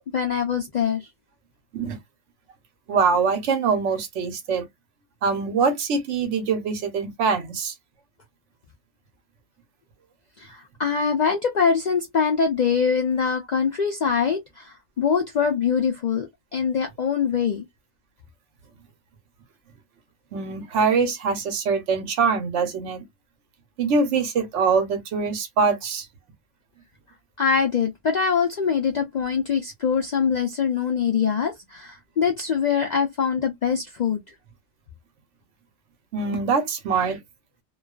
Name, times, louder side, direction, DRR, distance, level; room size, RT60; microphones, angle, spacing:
voice 1, 0.1-1.1 10.4-16.3 16.5-17.7 27.4-34.2, left 6 dB, 70° left, 0.4 m, -23 dB
voice 2, 2.9-4.7 5.2-7.7 20.3-23.0 23.8-26.1 36.1-37.2, right 5 dB, 70° right, 1.0 m, -23 dB
2.4 x 2.3 x 2.2 m
omnidirectional pair, 1.3 m